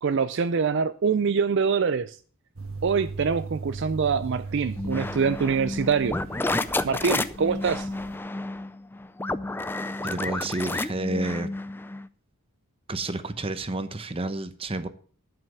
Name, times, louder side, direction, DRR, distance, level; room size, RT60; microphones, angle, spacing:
voice 1, 0.0-2.1 2.8-6.2 6.8-7.9, right 5 dB, 55° right, 0.4 m, -24 dB
sound 1, 2.6-8.2, right 3 dB, 75° right, 1.4 m, -39 dB
sound 2, 4.8-12.1, left 2 dB, 10° left, 0.4 m, -31 dB
voice 2, 10.0-11.5 12.9-14.9, right 2 dB, 25° right, 0.9 m, -30 dB
11.0 x 5.8 x 6.9 m
head